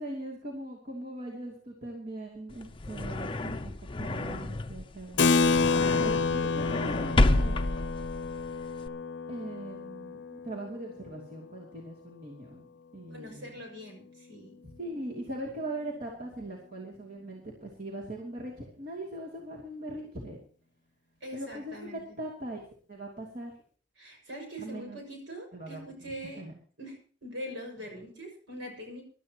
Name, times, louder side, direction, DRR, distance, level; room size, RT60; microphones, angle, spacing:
voice 1, 0.0-7.6 9.3-13.6 14.8-20.4 21.3-22.6 22.9-23.5 24.6-25.0 25.5-26.1 26.4-26.5, right 1 dB, 45° right, -3 dB, 2.8 m, -40 dB
sound 1, 2.5-8.9, left 2 dB, 25° left, 0.6 m, -30 dB
Keyboard (musical), 5.2-11.2, left 4 dB, 60° left, 0.7 m, -29 dB
voice 2, 13.1-14.5 21.2-22.0 24.0-26.4 26.8-26.9 27.2-29.0, equal, 75° right, 1 dB, 6.2 m, -42 dB
24.0 x 12.5 x 3.0 m, 0.43 s
head